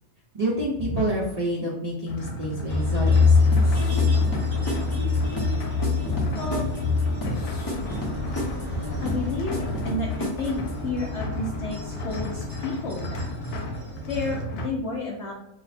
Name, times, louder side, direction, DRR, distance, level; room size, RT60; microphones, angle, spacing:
voice 1, 0.3-3.6, right 1 dB, 55° right, -6 dB, 0.4 m, -28 dB
sound 1, 2.1-14.7, equal, 85° left, 1.1 m, -34 dB
sound 2, 2.7-14.4, left 4 dB, 20° right, 0.7 m, -26 dB
sound 3, 3.5-10.9, left 1 dB, 30° left, 0.4 m, -33 dB
voice 2, 6.4-6.7 9.0-9.6 9.8-10.6 10.8-13.3 14.1-15.3, left 3 dB, 65° left, -2 dB, 0.7 m, -31 dB
2.7 x 2.1 x 4.0 m, 0.87 s
omnidirectional pair, 1.6 m